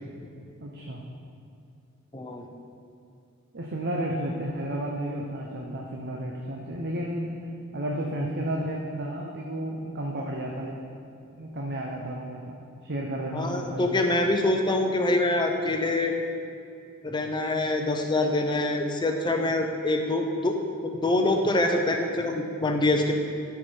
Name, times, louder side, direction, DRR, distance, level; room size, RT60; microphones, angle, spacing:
voice 1, 0.6-1.0 3.5-7.3 7.7-10.8 11.4-12.6 12.8-13.9, right 1 dB, 50° right, -1 dB, 0.7 m, -32 dB
voice 2, 2.1-2.4 13.3-16.2 17.0-20.6 20.8-23.1, left 2 dB, 20° left, 3 dB, 0.6 m, -25 dB
12.5 x 4.8 x 4.5 m, 2.4 s
head